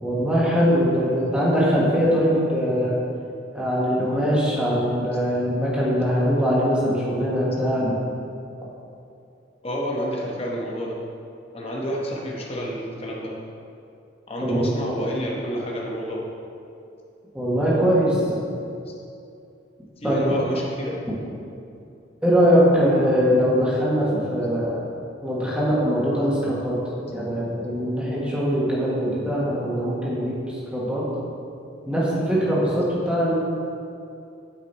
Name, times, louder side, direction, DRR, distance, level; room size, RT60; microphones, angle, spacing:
voice 1, 0.0-3.0 3.5-7.9 14.4-14.7 17.3-18.4 20.0-20.2 22.2-24.8 25.2-26.8 27.1-31.0 31.9-33.4, equal, 5° right, -7 dB, 1.5 m, -22 dB
voice 2, 9.6-11.0 11.5-13.3 14.3-16.3 18.1-18.4 18.9-19.0 20.0-21.0 22.8-23.1, equal, 30° left, -3 dB, 1.1 m, -29 dB
8.7 x 5.3 x 4.1 m, 2.6 s
head